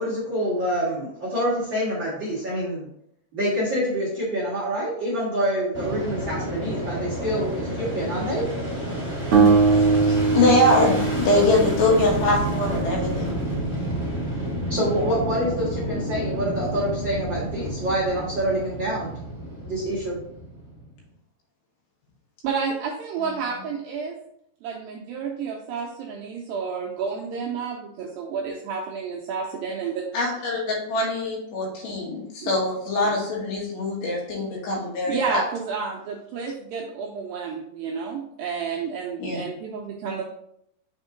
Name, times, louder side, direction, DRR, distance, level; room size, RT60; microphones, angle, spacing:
voice 1, 0.0-2.9 3.3-8.4 14.7-19.1 19.6-20.1, equal, 50° right, -8 dB, 1.4 m, -26 dB
Fixed-wing aircraft airplane, 5.7-20.9, right 1 dB, 5° left, 1.0 m, -30 dB
sound 1, 9.3-12.5, right 4 dB, 65° right, 1.6 m, -20 dB
voice 2, 10.0-13.4 30.1-35.4 39.2-39.4, left 2 dB, 80° left, -2 dB, 3.6 m, -23 dB
voice 3, 22.4-24.2 24.6-30.1 32.4-32.5 35.1-40.2, right 5 dB, 90° right, -1 dB, 2.1 m, -30 dB
7.0 x 3.6 x 3.8 m, 0.73 s
omnidirectional pair, 4.8 m